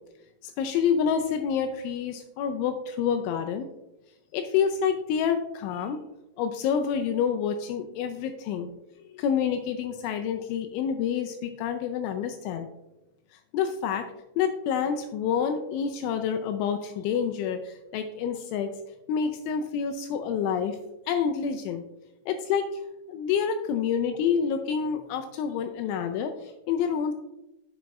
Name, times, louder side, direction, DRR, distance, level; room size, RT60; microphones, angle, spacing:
voice 1, 0.4-3.7 4.3-6.0 6.4-8.7 9.1-12.7 13.5-14.1 14.4-18.7 19.1-20.8 21.1-21.8 22.3-22.7 23.1-27.1, left 7 dB, 85° left, 6 dB, 2.7 m, -28 dB
9.2 x 7.5 x 2.3 m, 0.92 s
omnidirectional pair, 5.9 m